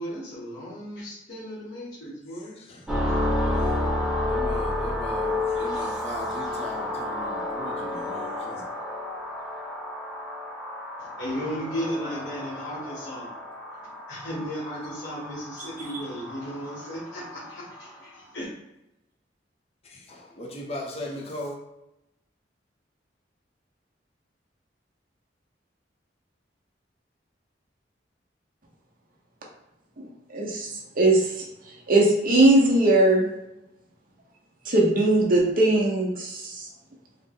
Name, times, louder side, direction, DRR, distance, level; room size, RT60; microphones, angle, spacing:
voice 1, 0.0-2.6 11.2-13.3 14.1-18.5, equal, 75° left, -9 dB, 1.1 m, -35 dB
voice 2, 2.3-2.9 3.4-3.9 4.2-8.6 19.8-21.6, left 1 dB, 35° left, -1 dB, 0.6 m, -38 dB
sound 1, 2.9-18.0, left 1 dB, ahead, 0.8 m, -31 dB
voice 3, 30.0-30.7 31.0-31.3 31.9-33.3 34.6-36.6, right 2 dB, 50° right, -2 dB, 0.8 m, -20 dB
3.8 x 2.1 x 3.6 m, 0.90 s
head